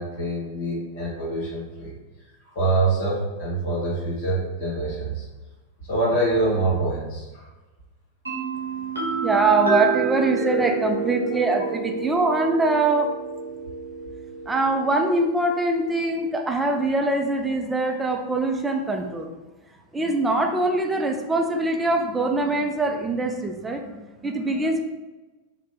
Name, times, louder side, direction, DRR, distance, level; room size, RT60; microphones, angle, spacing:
voice 1, 0.0-1.9 2.4-5.3 5.9-7.5, right 2 dB, 55° left, -6 dB, 1.2 m, -25 dB
sound 1, 8.3-15.9, right 5 dB, 75° right, 0.7 m, -29 dB
voice 2, 9.2-13.1 14.5-19.3 19.9-24.8, right 2 dB, 10° right, 3 dB, 0.4 m, -23 dB
3.2 x 2.1 x 2.9 m, 1.1 s
figure-of-eight pair, 90°, 0 cm